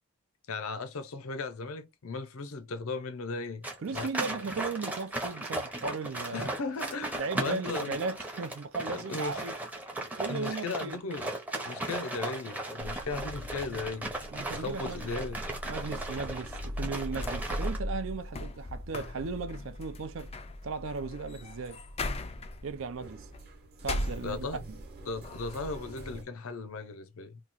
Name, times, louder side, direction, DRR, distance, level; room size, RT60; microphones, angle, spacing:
voice 1, 0.5-3.7 3.9-4.1 4.4-4.5 6.3-8.0 8.9-9.4 10.3-11.3 11.6-14.1 14.4-15.4 24.2-24.6 25.1-27.4, left 3 dB, 70° left, 0.6 m, -37 dB
sound 1, 3.6-17.8, right 1 dB, 5° right, 0.7 m, -37 dB
voice 2, 3.8-6.5 7.2-9.5 10.2-11.0 14.3-15.1 15.7-20.3 20.6-21.8 22.6-23.3 23.8-24.7, right 4 dB, 65° right, 0.5 m, -36 dB
sound 2, 12.8-26.2, equal, 45° right, 0.9 m, -42 dB
sound 3, 17.1-24.8 25.2-26.0, left 2 dB, 25° left, 0.4 m, -40 dB
3.0 x 2.4 x 3.9 m
head